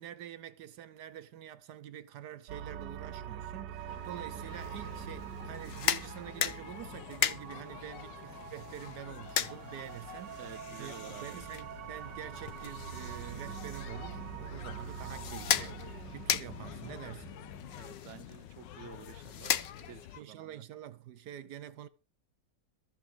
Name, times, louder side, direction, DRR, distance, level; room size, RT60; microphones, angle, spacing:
voice 1, 0.0-10.4 10.8-10.9 11.2-17.4 20.2-21.9, right 11 dB, 70° right, 1.3 m, -46 dB
sound 1, 2.5-17.8, right 10 dB, 90° right, 1.4 m, -45 dB
sound 2, 3.9-20.2, left 12 dB, 85° left, 1.4 m, -49 dB
sound 3, 5.5-20.2, left 9 dB, 65° left, 0.6 m, -38 dB
voice 2, 10.4-11.4 17.7-20.6, right 9 dB, 55° right, 1.0 m, -51 dB
13.5 x 5.0 x 7.8 m
omnidirectional pair, 1.9 m